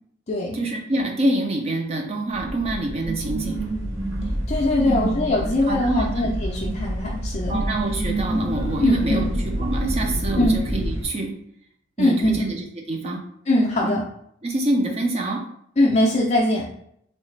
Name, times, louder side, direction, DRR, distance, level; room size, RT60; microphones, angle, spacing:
voice 1, 0.5-3.6 4.9-5.1 5.7-6.3 7.5-11.3 12.0-13.2 13.8-14.0 14.4-15.4, right 2 dB, 30° right, 2 dB, 0.5 m, -26 dB
sound 1, 2.3-11.1, right 1 dB, 70° right, 1.0 m, -27 dB
voice 2, 4.5-7.6 8.8-9.3 10.4-10.5 12.0-12.5 13.5-14.0 15.8-16.7, left 1 dB, 30° left, -2 dB, 0.4 m, -21 dB
3.1 x 2.8 x 3.2 m, 0.70 s
head